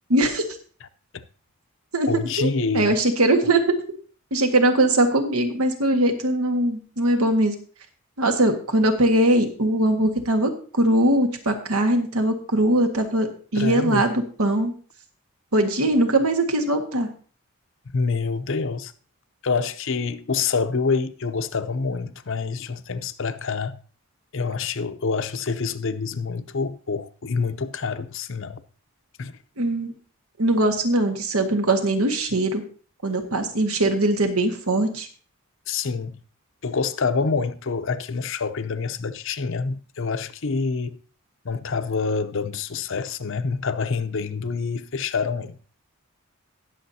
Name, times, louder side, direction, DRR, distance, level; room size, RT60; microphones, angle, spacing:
voice 1, 0.1-0.4 1.9-2.1 2.4-3.8 4.3-7.6 8.2-14.7 15.5-17.1 29.6-29.9 30.4-32.6 33.0-35.1, right 1 dB, 90° right, 1.6 m, -21 dB
voice 2, 2.1-2.9 13.6-14.1 17.9-18.9 19.4-23.8 24.3-28.6 29.2-29.4 35.7-36.2 36.6-41.0 41.4-45.6, left 4 dB, 60° left, 0.7 m, -26 dB
19.5 x 7.2 x 2.8 m
head